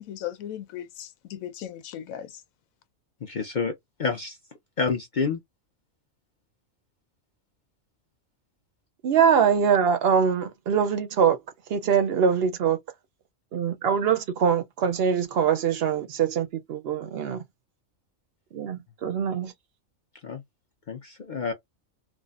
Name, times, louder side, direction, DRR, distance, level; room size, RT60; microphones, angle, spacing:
voice 1, 0.0-2.3, left 11 dB, 90° left, 1.0 m, -37 dB
voice 2, 3.2-3.7 4.0-4.4 4.8-5.4 20.2-20.4 20.9-21.5, left 5 dB, 50° left, 0.6 m, -28 dB
voice 3, 9.0-11.4 11.7-12.8 13.5-17.4 18.5-19.5, right 7 dB, 60° right, 0.7 m, -23 dB
3.4 x 2.0 x 2.4 m
omnidirectional pair, 1.4 m